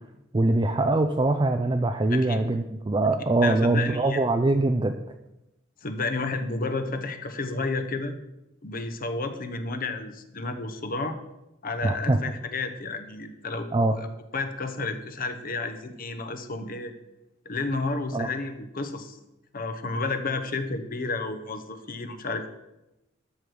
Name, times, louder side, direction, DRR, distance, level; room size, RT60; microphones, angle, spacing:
voice 1, 0.3-4.9 11.8-12.2 13.7-13.9 18.1-18.3, right 2 dB, 25° right, 6 dB, 0.4 m, -23 dB
voice 2, 2.1-2.4 3.4-4.2 5.8-8.1 8.6-11.2 11.6-14.1 14.3-16.9 17.4-19.2 19.5-22.5, left 3 dB, 45° left, 9 dB, 0.9 m, -31 dB
13.0 x 6.2 x 5.0 m, 0.95 s
head